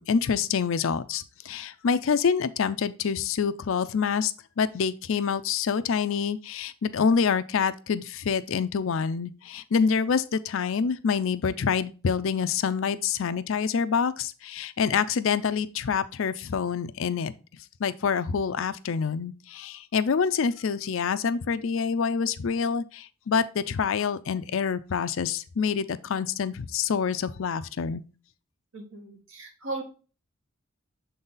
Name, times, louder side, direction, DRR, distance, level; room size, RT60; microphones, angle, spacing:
voice 1, 0.0-17.3 17.8-28.0, left 6 dB, 65° left, 0.4 m, -26 dB
voice 2, 28.7-29.8, right 3 dB, 65° right, 1.5 m, -37 dB
6.7 x 4.0 x 3.8 m
head